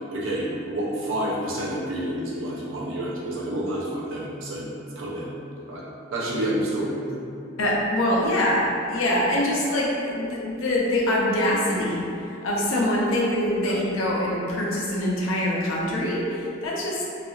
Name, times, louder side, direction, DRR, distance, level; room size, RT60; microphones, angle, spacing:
voice 1, 0.1-4.7 5.0-5.3 5.7-5.8 6.1-7.2 13.6-13.8, right 1 dB, 70° right, -6 dB, 0.6 m, -29 dB
voice 2, 7.6-12.0 12.4-17.0, left 1 dB, 75° left, -4 dB, 0.5 m, -24 dB
2.7 x 2.3 x 2.4 m, 2.7 s
head